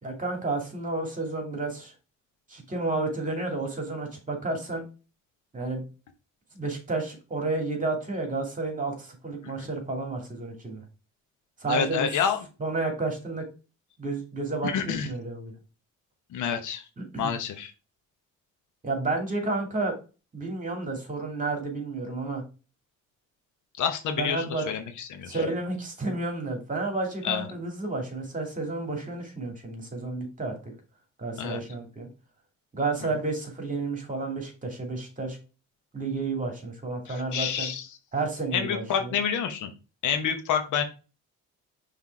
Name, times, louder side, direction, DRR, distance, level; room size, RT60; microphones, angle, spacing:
voice 1, 0.0-1.9 2.5-4.9 5.5-5.8 6.5-10.8 11.6-12.1 12.6-13.4 14.0-15.5 17.0-17.3 18.8-19.9 20.3-22.4 24.2-24.7 25.3-30.7 31.2-32.1 32.7-35.4 35.9-37.7 38.1-39.2, right 3 dB, 25° right, 3 dB, 2.5 m, -31 dB
voice 2, 11.7-12.4 14.6-15.1 16.3-16.8 17.2-17.7 23.8-25.4 27.2-27.5 31.4-31.6 37.1-37.9 38.5-39.7 40.0-40.8, left 8 dB, 80° left, 7 dB, 1.1 m, -28 dB
5.8 x 3.5 x 4.6 m, 0.32 s
cardioid pair, 90°, 30 cm